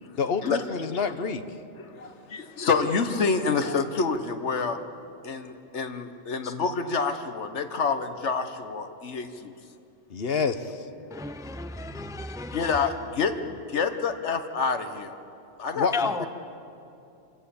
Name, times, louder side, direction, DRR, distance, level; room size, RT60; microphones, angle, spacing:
voice 1, 0.2-1.4 10.1-10.9 15.7-16.3, left 5 dB, 60° left, 10 dB, 1.2 m, -28 dB
voice 2, 1.8-4.8 5.2-9.5 12.5-15.2 15.6-15.9 16.2-16.3, left 5 dB, 80° left, 9 dB, 1.5 m, -28 dB
voice 3, 11.1-12.8 15.9-16.3, left 3 dB, 5° right, 9 dB, 0.6 m, -32 dB
27.5 x 16.5 x 7.1 m, 2.7 s
omnidirectional pair, 1.2 m